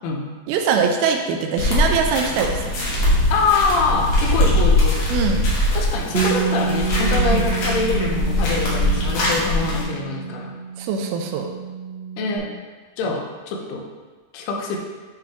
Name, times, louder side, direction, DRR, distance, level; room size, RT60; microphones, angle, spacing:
voice 1, 0.5-2.7 5.1-5.5 7.2-7.5 10.8-11.5, right 6 dB, 80° right, 4 dB, 2.3 m, -22 dB
sound 1, 1.6-9.8, left 1 dB, 60° left, 1.8 m, -21 dB
voice 2, 3.3-5.0 5.7-10.5 12.2-12.5 13.0-13.9 14.3-14.8, left 4 dB, 90° left, 0 dB, 2.7 m, -24 dB
Bass guitar, 6.1-12.4, right 7 dB, 55° right, 1.5 m, -28 dB
8.4 x 3.3 x 3.5 m, 1.4 s
omnidirectional pair, 4.6 m